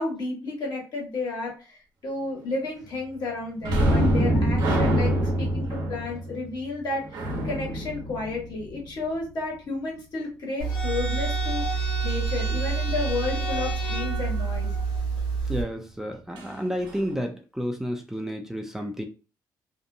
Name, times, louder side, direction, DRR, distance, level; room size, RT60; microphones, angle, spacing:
voice 1, 0.0-1.8 2.0-14.7, left 3 dB, 65° left, -1 dB, 1.3 m, -32 dB
sound 1, 3.6-9.0 16.4-16.5 16.9-17.0, right 1 dB, 80° right, 0.8 m, -25 dB
sound 2, 10.6-15.6, right 4 dB, 85° left, 1.1 m, -27 dB
voice 2, 15.5-19.0, equal, 5° right, 2 dB, 0.5 m, -31 dB
2.7 x 2.1 x 2.6 m, 0.33 s
cardioid pair, 85°, 8 cm